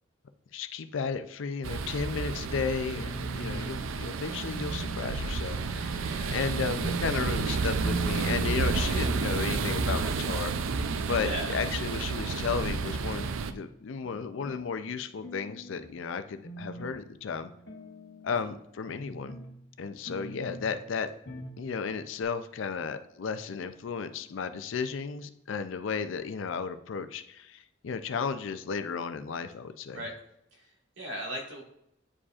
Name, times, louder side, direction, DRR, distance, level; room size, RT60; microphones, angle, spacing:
voice 1, 0.5-10.5 11.0-17.5 18.2-19.4 19.8-21.1 21.6-30.0, left 5 dB, 75° left, 10 dB, 0.4 m, -34 dB
sound 1, 1.6-13.5, right 4 dB, 80° right, 0.4 m, -31 dB
sound 2, 3.0-3.9 4.4-5.2 5.6-6.3 6.8-7.1 7.4-7.5 7.8-8.8 9.3-9.9 10.2-11.2 11.7-11.9 12.3-12.4 12.6-13.5 14.0-14.7 15.2-15.9 16.4-17.0 17.4-18.5 18.9-19.5 20.1-20.7 21.3-21.6 21.9-22.0 22.2-22.3, right 2 dB, 55° left, 1.0 m, -41 dB
voice 2, 3.4-3.9 5.9-6.4 9.3-9.6 11.2-11.6 18.4-18.5 29.9-30.1 30.5-31.6, equal, 65° right, -1 dB, 1.6 m, -39 dB
9.8 x 4.8 x 2.4 m, 0.78 s
head